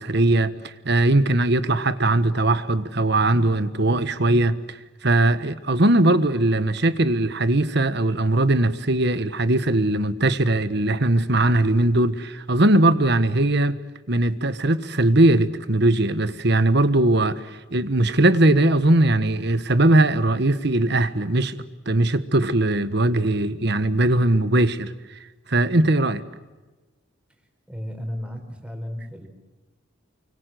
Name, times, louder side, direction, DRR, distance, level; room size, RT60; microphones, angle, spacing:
voice 1, 0.0-13.8 14.1-21.6 21.8-24.9 25.5-26.2, right 1 dB, 55° right, 1.4 m, -20 dB
voice 2, 27.7-29.3, equal, 5° right, 4.7 m, -33 dB
29.5 x 25.0 x 7.9 m
head